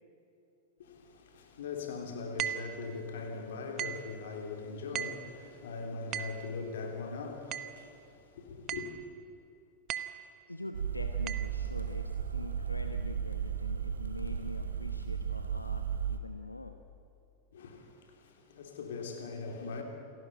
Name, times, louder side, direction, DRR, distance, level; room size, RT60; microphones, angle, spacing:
voice 1, 0.8-8.8 17.5-19.8, left 4 dB, 60° left, 3.4 m, -41 dB
sound 1, 2.4-2.8 3.8-4.1 4.9-5.3 6.1-6.5 7.5-7.8 8.7-9.0 9.9-10.3 11.3-11.5, right 11 dB, 35° right, 1.0 m, -37 dB
voice 2, 10.5-16.8, left 1 dB, 85° left, 1.0 m, -44 dB
sound 2, 10.7-16.2, right 7 dB, 70° right, 1.3 m, -35 dB
28.0 x 12.5 x 8.9 m
figure-of-eight pair, 90°, 0 cm